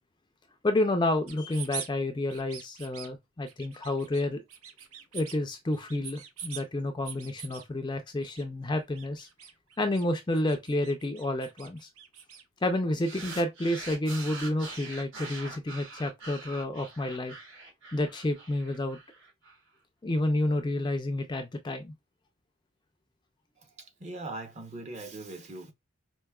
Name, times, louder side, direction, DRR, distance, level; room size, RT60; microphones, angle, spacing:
voice 1, 0.6-4.4 5.1-9.3 9.8-11.9 12.6-17.3 17.9-19.0 20.0-21.9, left 1 dB, 20° left, 0.4 m, -30 dB
sound 1, 1.3-1.9 2.3-3.1 3.5-4.2 4.5-5.4 5.7-6.6 7.0-7.6 8.2-8.4 8.7-10.1 10.3-12.4, right 8 dB, 80° right, 0.6 m, -43 dB
sound 2, 13.0-19.5, right 3 dB, 60° right, 1.4 m, -44 dB
voice 2, 23.6-25.7, right 2 dB, 30° right, 0.7 m, -41 dB
4.7 x 2.6 x 2.2 m
head